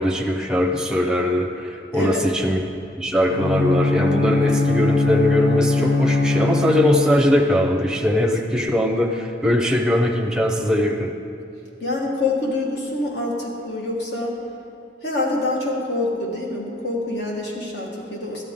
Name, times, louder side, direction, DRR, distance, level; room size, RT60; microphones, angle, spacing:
voice 1, 0.0-2.6 3.0-11.1, left 1 dB, 5° right, 2 dB, 0.6 m, -21 dB
Bowed string instrument, 3.3-7.5, left 3 dB, 45° left, 0.8 m, -21 dB
voice 2, 11.8-14.4 15.0-18.4, left 2 dB, 65° left, -2 dB, 1.4 m, -25 dB
13.5 x 10.0 x 3.6 m, 2.5 s
head